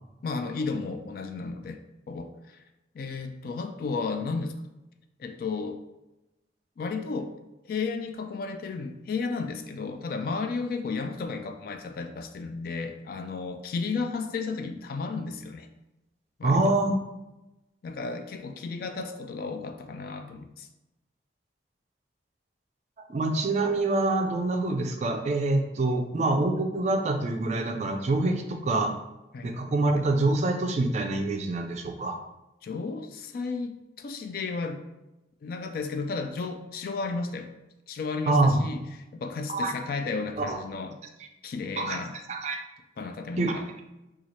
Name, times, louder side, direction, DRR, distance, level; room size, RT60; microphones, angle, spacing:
voice 1, 0.2-1.8 2.1-2.6 2.9-4.5 5.2-5.8 6.8-7.3 7.6-15.7 16.4-16.7 17.8-20.7 29.3-29.6 32.6-34.8 35.4-37.5 37.9-38.8 39.1-41.0 41.4-42.2 43.0-43.6, left 4 dB, 55° left, 7 dB, 0.3 m, -33 dB
voice 2, 16.4-17.0 23.1-28.9 29.4-32.2 38.3-38.7 39.5-39.7 40.4-40.6 41.8-42.0 42.3-42.6 43.4-43.6, right 2 dB, 40° right, 4 dB, 0.3 m, -25 dB
4.1 x 2.4 x 3.0 m, 0.98 s
head